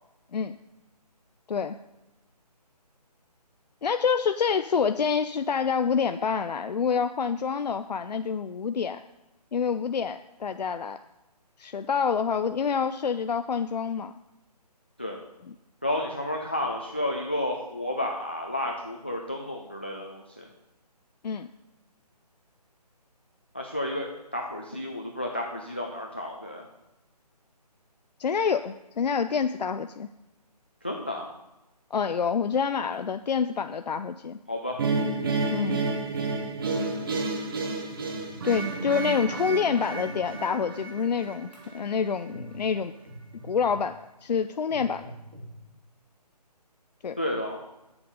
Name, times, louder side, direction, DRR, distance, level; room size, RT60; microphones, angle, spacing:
voice 1, 3.8-9.0 9.5-11.0 11.6-14.1 21.2-21.5 28.2-30.1 31.9-34.4 35.5-35.8 38.4-42.9 43.4-45.0 47.0-47.2, left 6 dB, 80° left, 9 dB, 0.5 m, -27 dB
voice 2, 15.8-20.5 23.5-26.6 30.8-31.3 34.5-34.8 47.2-47.6, left 1 dB, 15° left, 1 dB, 0.3 m, -31 dB
sound 1, 32.9-33.0 33.3-33.4 34.2-35.4 36.1-37.1 37.9-39.2 40.0-40.2 41.0-41.2 41.5-41.8 42.3-42.6 43.0-43.9 44.7-45.6, right 1 dB, 80° right, 3.9 m, -47 dB
sound 2, 34.8-41.9, right 3 dB, 35° right, 1.0 m, -30 dB
8.3 x 7.0 x 5.2 m, 0.97 s
figure-of-eight pair, 160°, 21 cm